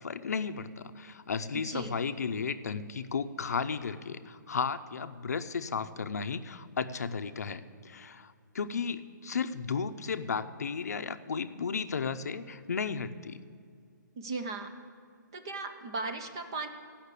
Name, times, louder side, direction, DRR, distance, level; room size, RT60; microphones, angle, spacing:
voice 1, 0.0-13.4, left 5 dB, 55° left, 10 dB, 0.6 m, -34 dB
voice 2, 1.5-1.9 14.2-14.7 15.3-16.7, right 3 dB, 15° right, 6 dB, 0.4 m, -37 dB
15.0 x 5.8 x 8.2 m, 2.2 s
hypercardioid pair, 180°, 10 cm